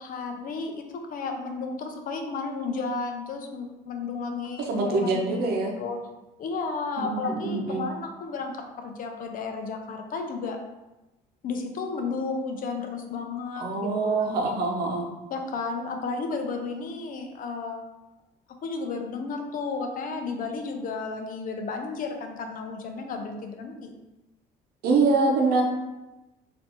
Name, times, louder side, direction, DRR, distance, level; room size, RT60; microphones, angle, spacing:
voice 1, 0.0-6.0 6.4-10.6 11.4-14.3 15.3-17.9 18.6-23.9, left 4 dB, 55° left, 4 dB, 0.6 m, -33 dB
voice 2, 4.7-5.7 7.0-7.9 13.6-15.1 24.8-25.6, right 3 dB, 70° right, 0 dB, 0.8 m, -24 dB
4.1 x 2.7 x 3.0 m, 1.0 s
cardioid pair, 110°, 17 cm